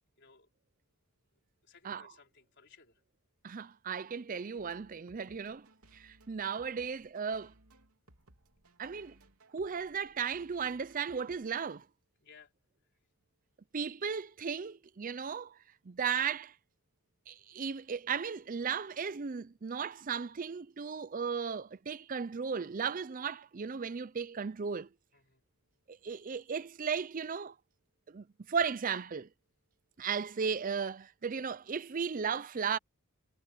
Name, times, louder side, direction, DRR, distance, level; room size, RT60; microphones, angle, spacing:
voice 1, 0.2-0.5 1.6-3.0 12.2-12.5 25.1-25.4, left 5 dB, 50° left, 4.1 m, -60 dB
voice 2, 3.4-5.7 5.9-7.5 8.8-9.2 9.5-11.8 13.7-15.5 15.9-16.5 17.3-24.9 25.9-27.5 28.1-29.3 30.0-32.8, right 6 dB, 40° right, 0.5 m, -35 dB
sound 1, 4.6-11.6, right 2 dB, 90° right, 3.3 m, -63 dB
head